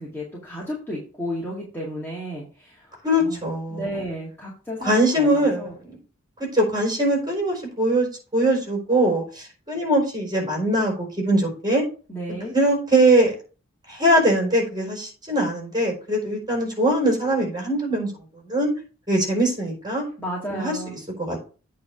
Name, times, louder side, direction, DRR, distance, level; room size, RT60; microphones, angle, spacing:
voice 1, 0.0-3.4 3.7-5.8 12.1-12.5 20.2-20.9, equal, 10° left, -5 dB, 2.2 m, -33 dB
voice 2, 3.0-4.0 4.8-6.0 6.4-8.1 8.3-11.8 12.5-13.3 13.9-18.1 18.5-18.7 19.1-20.0 20.5-21.4, right 1 dB, 20° right, -1 dB, 4.3 m, -22 dB
8.6 x 3.5 x 6.7 m, 0.36 s
head